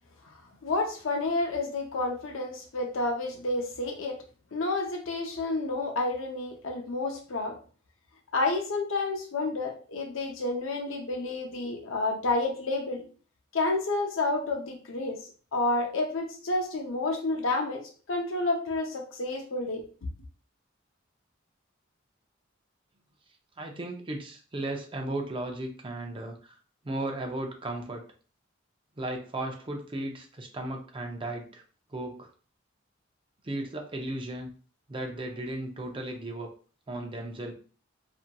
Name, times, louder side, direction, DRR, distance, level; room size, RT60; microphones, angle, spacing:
voice 1, 0.6-4.2 4.5-7.6 8.3-13.0 13.5-15.2 15.5-17.8 18.1-19.8, left 2 dB, 75° left, 2 dB, 0.6 m, -30 dB
voice 2, 23.6-26.6 26.8-28.0 29.0-31.6 31.9-32.3 33.4-34.5 34.9-36.5 36.9-37.5, right 1 dB, 25° right, 2 dB, 0.5 m, -35 dB
2.8 x 2.5 x 2.2 m, 0.40 s
head